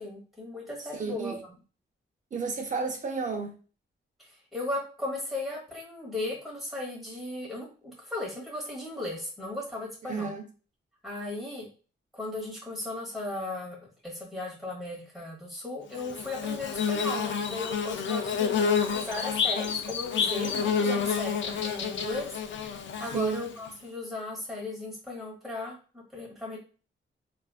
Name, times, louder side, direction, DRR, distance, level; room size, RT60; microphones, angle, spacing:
voice 1, 0.0-1.4 4.5-10.3 11.0-11.7 12.1-13.8 14.0-18.6 18.9-22.3 23.0-26.6, left 2 dB, ahead, 1.3 m, -36 dB
voice 2, 0.9-1.4 2.3-3.5 10.1-10.4 23.1-23.4, right 4 dB, 35° right, 0.5 m, -31 dB
Bird / Buzz, 16.0-23.7, left 6 dB, 65° left, 0.4 m, -29 dB
3.3 x 2.4 x 2.4 m
wide cardioid pair, 175°, 21 cm